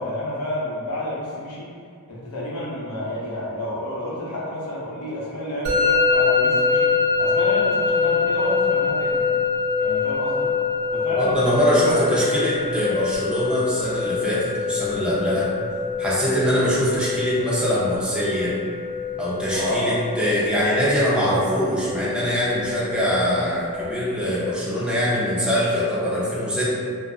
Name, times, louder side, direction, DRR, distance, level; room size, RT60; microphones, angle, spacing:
voice 1, 0.0-1.7 2.1-9.2 9.8-10.5 10.9-12.0 19.5-20.0, left 1 dB, 75° left, -8 dB, 0.8 m, -29 dB
Musical instrument, 5.6-24.5, left 5 dB, 85° right, 0.5 m, -25 dB
voice 2, 11.1-15.5 16.0-18.5 19.2-26.7, equal, 5° right, -8 dB, 0.5 m, -23 dB
2.5 x 2.3 x 2.3 m, 2.3 s
head